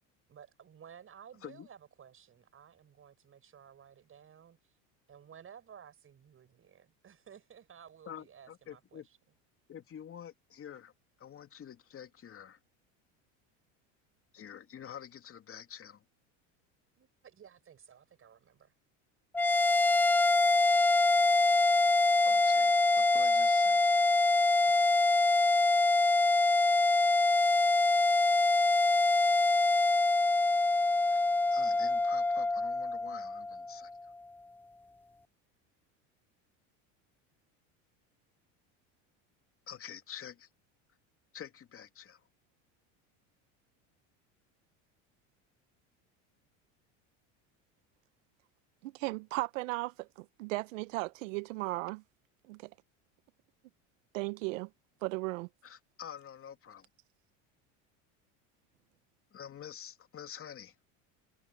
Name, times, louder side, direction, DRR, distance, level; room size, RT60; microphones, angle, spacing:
voice 1, 0.3-4.7 5.1-9.2 17.0-18.7 24.7-24.9, right 8 dB, 35° right, 7.6 m, -55 dB
voice 2, 8.0-9.1 9.7-10.9 11.2-12.6 14.3-16.0 22.2-24.1 31.1-34.1 39.7-40.5 41.3-42.3 55.6-56.9 59.3-60.7, left 9 dB, 35° left, 2.9 m, -48 dB
sound 1, 19.3-33.9, left 2 dB, 5° left, 0.3 m, -25 dB
voice 3, 48.8-52.0 52.5-52.7 54.1-54.7 55.0-55.5, right 22 dB, 90° right, 0.9 m, -36 dB
supercardioid pair, 110°, 37 cm